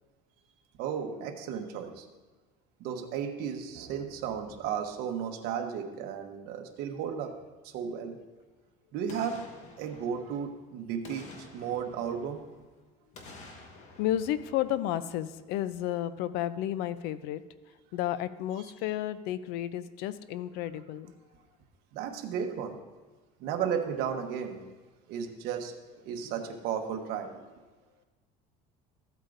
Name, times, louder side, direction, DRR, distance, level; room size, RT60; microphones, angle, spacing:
voice 1, 0.8-2.1 2.8-7.3 7.6-8.2 8.9-12.5 13.5-13.7 21.9-22.8 23.4-24.7 25.1-27.6, right 7 dB, 65° right, 4 dB, 1.1 m, -34 dB
Boom, 9.1-10.6 11.0-12.7 13.1-15.4 15.7-15.8, left 3 dB, 45° left, 1.4 m, -50 dB
voice 2, 14.0-17.4 17.9-21.1, left 12 dB, 75° left, 14 dB, 0.5 m, -32 dB
14.0 x 8.1 x 2.6 m, 1.3 s
cardioid pair, 145°, 17 cm